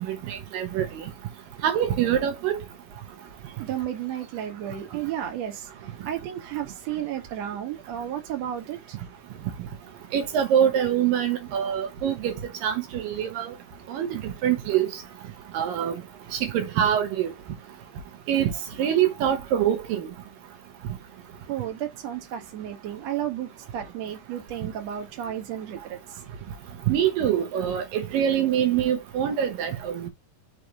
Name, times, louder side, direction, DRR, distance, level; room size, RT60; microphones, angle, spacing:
voice 1, 0.1-1.0 1.6-2.6 10.1-12.3 12.6-13.5 13.9-14.9 15.5-16.0 16.5-17.3 18.3-18.5 18.8-20.1 26.9-30.1, right 9 dB, 85° right, 2.8 m, -24 dB
voice 2, 3.6-5.7 6.0-9.0 21.5-26.2, right 10 dB, 60° right, 2.4 m, -33 dB
6.4 x 3.0 x 5.2 m
omnidirectional pair, 3.9 m